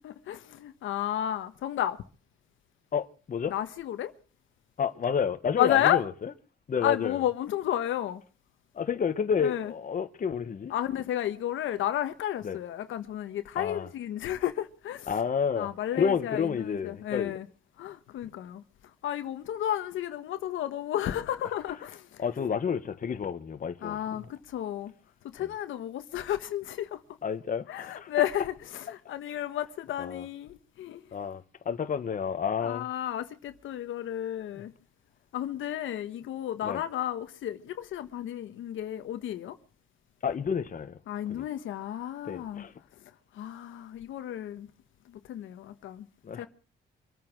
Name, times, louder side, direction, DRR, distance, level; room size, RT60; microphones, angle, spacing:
voice 1, 0.0-2.0 3.5-4.1 5.6-6.0 6.8-8.2 9.4-9.7 10.7-15.1 15.6-17.5 17.8-18.6 19.0-22.2 23.8-24.9 25.2-27.0 27.7-31.0 32.6-34.7 35.3-39.6 41.1-42.7 43.3-44.7 45.1-46.1 46.3-46.5, left 11 dB, 80° left, 1.4 m, -32 dB
voice 2, 2.9-3.5 4.8-6.3 6.7-7.2 8.7-10.7 12.4-12.6 13.5-13.9 15.1-17.4 22.2-24.2 27.2-28.1 30.0-30.2 31.1-32.9 36.6-36.8 40.2-41.0 41.3-41.5 42.2-42.7 46.2-46.5, left 7 dB, 45° left, 1.5 m, -30 dB
25.0 x 8.8 x 6.2 m
cardioid pair, 90°, 20 cm